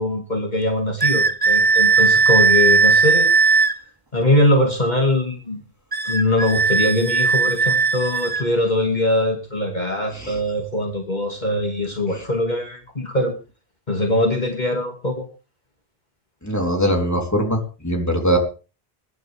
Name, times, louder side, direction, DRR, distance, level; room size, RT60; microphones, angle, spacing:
voice 1, 0.0-3.3 4.1-5.6 6.1-13.3 13.9-15.3, left 1 dB, 45° left, 1 dB, 2.6 m, -22 dB
sound 1, 1.0-3.8 5.9-8.5, right 4 dB, 25° right, 0.9 m, -17 dB
voice 2, 16.4-18.4, equal, 15° left, 1 dB, 3.7 m, -21 dB
23.0 x 11.5 x 3.6 m, 0.34 s
omnidirectional pair, 1.0 m